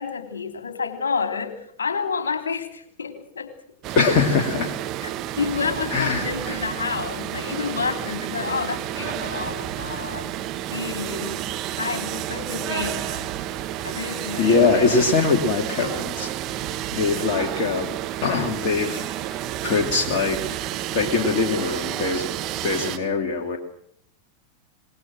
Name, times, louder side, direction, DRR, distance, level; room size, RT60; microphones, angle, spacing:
voice 1, 0.0-1.5 1.8-3.5 5.0-5.1 5.4-10.3 10.7-11.4 11.8-13.3 13.8-15.0, left 5 dB, 70° left, 7 dB, 3.3 m, -29 dB
sound 1, 3.8-23.0, right 12 dB, 35° right, 1.9 m, -30 dB
voice 2, 3.9-4.7 5.9-6.6 14.4-16.3 16.6-17.9 18.2-20.4 20.9-22.3 22.6-23.6, left 4 dB, 40° left, 1 dB, 2.9 m, -22 dB
26.0 x 21.0 x 6.3 m, 0.65 s
figure-of-eight pair, 90°, 0 cm